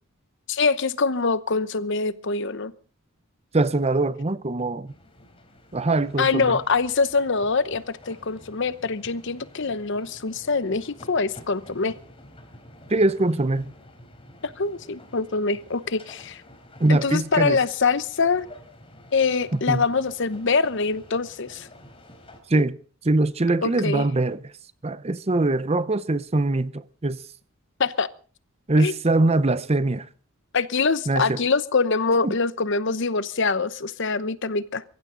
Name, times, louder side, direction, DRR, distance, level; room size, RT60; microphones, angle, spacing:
voice 1, 0.5-2.7 6.2-12.0 14.4-16.4 16.9-18.5 19.1-21.7 23.6-24.1 27.8-28.1 28.8-28.9 30.5-34.8, left 4 dB, 55° left, 0.9 m, -24 dB
voice 2, 3.5-4.9 5.7-6.6 12.9-13.7 16.8-17.6 19.5-19.8 22.5-22.8 23.0-24.4 24.8-27.2 28.7-30.1 31.1-31.4 32.2-32.3, right 2 dB, 30° right, 0.7 m, -22 dB
sound 1, 4.9-22.4, left 1 dB, 25° left, 4.1 m, -49 dB
23.0 x 15.0 x 3.9 m
head